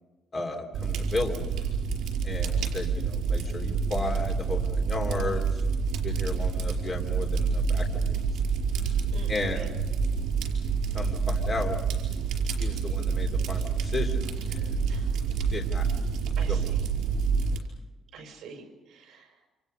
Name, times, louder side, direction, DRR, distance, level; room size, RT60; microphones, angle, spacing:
voice 1, 0.3-1.5 2.2-5.6 5.9-8.2 9.3-9.8 10.9-11.8 12.6-14.9 15.5-15.9 16.5-16.6, left 3 dB, 25° left, 2 dB, 3.0 m, -34 dB
Fire, 0.7-17.6, right 5 dB, 80° right, 5.1 m, -28 dB
voice 2, 9.1-9.7 14.9-15.1 16.4-16.8 18.1-19.5, right 4 dB, 60° right, 3 dB, 5.7 m, -46 dB
28.5 x 27.0 x 5.5 m, 1.2 s
cardioid pair, 165°, 0 cm